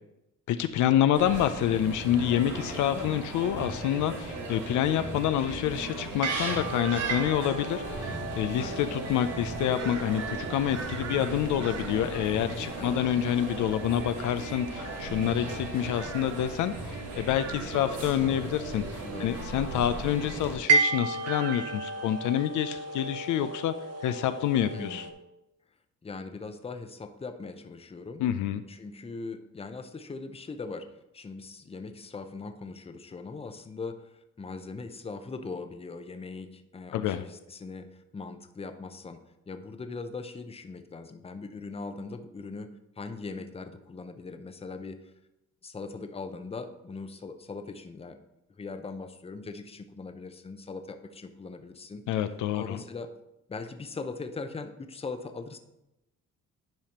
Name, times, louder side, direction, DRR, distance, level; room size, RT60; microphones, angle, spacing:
voice 1, 0.5-23.7 24.0-25.1 28.2-28.6 36.9-37.2 52.1-52.8, left 10 dB, 80° left, 10 dB, 0.5 m, -27 dB
sound 1, 1.2-20.5, right 2 dB, 90° right, 1.7 m, -37 dB
sound 2, 5.7-25.1, right 4 dB, 55° right, 0.8 m, -35 dB
voice 2, 8.5-8.9 12.8-13.0 19.0-19.4 24.7-25.1 26.0-28.2 28.7-30.9 31.1-39.2 39.5-45.1 45.6-48.2 48.6-52.0 52.5-53.1 53.5-55.6, left 4 dB, 20° left, 8 dB, 0.6 m, -40 dB
10.5 x 4.9 x 2.9 m, 0.89 s
cardioid pair, 90°, 30 cm